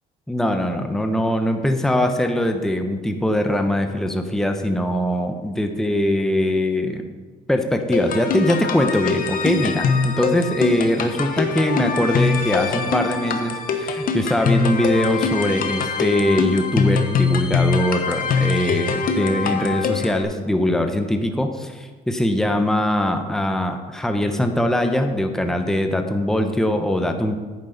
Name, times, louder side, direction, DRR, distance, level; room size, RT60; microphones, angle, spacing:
voice 1, 0.3-7.1 7.5-27.4, left 1 dB, 5° left, 5 dB, 0.9 m, -22 dB
sound 1, 7.9-20.2, left 5 dB, 55° left, 1.1 m, -23 dB
10.5 x 8.9 x 4.0 m, 1.4 s
cardioid pair, 110°, 17 cm